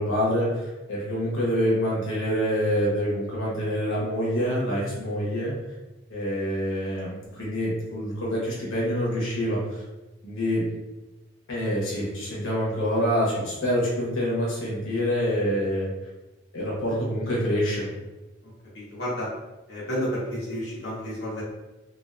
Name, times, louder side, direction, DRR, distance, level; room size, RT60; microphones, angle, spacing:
voice 1, 0.0-5.5 6.1-9.8 10.2-10.7 11.5-15.9 16.5-17.9, equal, 90° left, -5 dB, 0.9 m, -26 dB
voice 2, 18.4-19.3 19.7-21.4, equal, 60° left, -7 dB, 0.8 m, -31 dB
2.4 x 2.3 x 2.4 m, 1.1 s
head